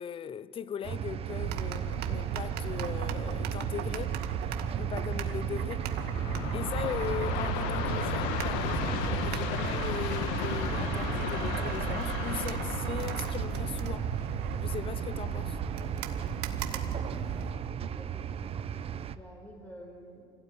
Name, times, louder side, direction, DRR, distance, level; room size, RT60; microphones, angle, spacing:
voice 1, 0.0-4.2 4.8-5.9 6.5-14.1 14.6-15.6, left 8 dB, 30° left, 0.7 m, -39 dB
sound 1, 0.8-19.2, right 8 dB, 35° right, 0.9 m, -36 dB
sound 2, 1.3-17.5, right 8 dB, 70° right, 2.0 m, -36 dB
Train, 5.7-14.9, left 9 dB, 80° left, 1.5 m, -35 dB
voice 2, 16.4-17.5 18.0-20.3, right 1 dB, 10° left, 4.6 m, -51 dB
26.0 x 17.5 x 9.6 m
supercardioid pair, 115°, 18 cm